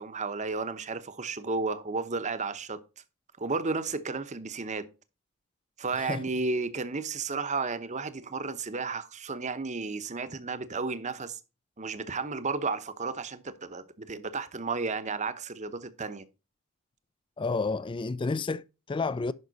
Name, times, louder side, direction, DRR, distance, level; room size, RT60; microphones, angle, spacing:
voice 1, 0.0-2.8 3.4-4.8 5.8-11.4 11.8-16.2, right 4 dB, 35° right, 0.8 m, -33 dB
voice 2, 17.4-19.3, left 3 dB, 25° left, 0.3 m, -30 dB
11.0 x 5.5 x 4.0 m
head